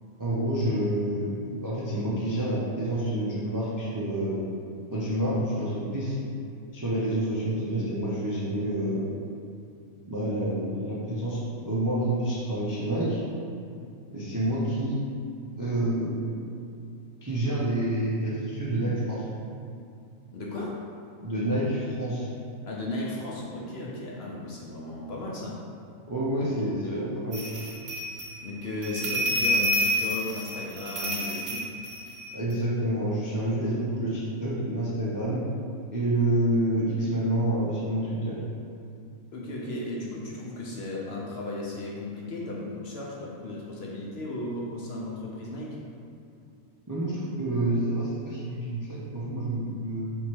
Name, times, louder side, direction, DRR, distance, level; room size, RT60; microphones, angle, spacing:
voice 1, 0.2-4.5 4.9-6.2 6.7-9.1 10.1-13.2 14.1-15.0 15.6-16.3 17.2-19.3 21.2-22.3 26.1-27.4 32.3-35.4 35.9-38.4 46.9-50.2, right 1 dB, 30° right, -7 dB, 0.3 m, -28 dB
voice 2, 20.3-20.8 22.6-25.6 26.8-27.1 28.4-31.7 39.3-45.8, left 2 dB, 60° left, -3 dB, 0.7 m, -35 dB
sound 1, 27.3-32.5, equal, 55° right, 0.9 m, -29 dB
3.5 x 3.1 x 4.4 m, 2.5 s
omnidirectional pair, 1.4 m